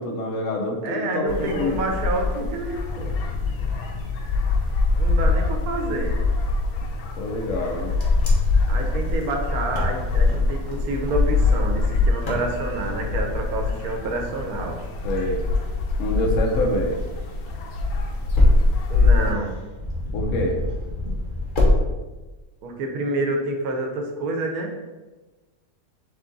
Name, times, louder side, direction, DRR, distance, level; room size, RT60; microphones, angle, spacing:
voice 1, 0.0-1.9 7.2-7.9 15.0-15.4 16.0-17.0 20.1-20.6, left 1 dB, 65° left, 1 dB, 1.0 m, -26 dB
voice 2, 0.8-3.1 5.0-6.1 8.7-14.8 18.9-19.5 22.6-24.7, right 2 dB, 85° right, 2 dB, 1.2 m, -28 dB
sound 1, 1.3-19.3, left 3 dB, 90° left, 1.1 m, -24 dB
Wind, 7.6-21.8, left 1 dB, 40° left, 0.9 m, -27 dB
3.7 x 3.5 x 3.8 m, 1.2 s
omnidirectional pair, 1.5 m